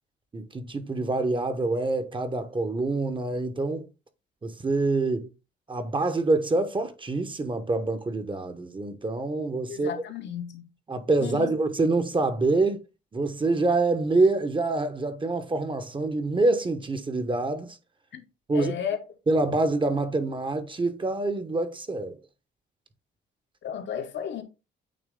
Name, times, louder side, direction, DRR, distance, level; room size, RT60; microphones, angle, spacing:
voice 1, 0.3-3.9 4.4-5.3 5.7-9.9 10.9-12.8 13.1-17.8 18.5-18.7 19.3-22.2, right 3 dB, 25° right, 1.0 m, -26 dB
voice 2, 9.7-10.7 11.2-11.5 18.1-18.2 18.5-19.0 23.6-24.4, left 8 dB, 65° left, 1.1 m, -33 dB
8.8 x 3.1 x 3.7 m
cardioid pair, 90°, 20 cm